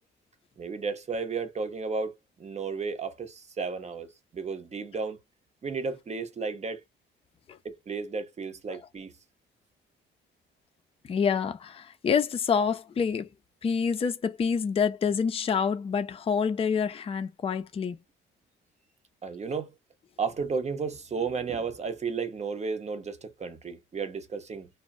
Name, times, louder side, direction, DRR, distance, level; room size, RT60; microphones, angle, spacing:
voice 1, 0.6-5.2 5.6-6.8 7.6-9.1 19.2-19.7 20.2-24.7, right 5 dB, 35° right, 0.7 m, -33 dB
voice 2, 11.1-13.3 13.6-18.0, left 6 dB, 30° left, 0.4 m, -27 dB
2.1 x 2.1 x 3.5 m
cardioid pair, 90°, 20 cm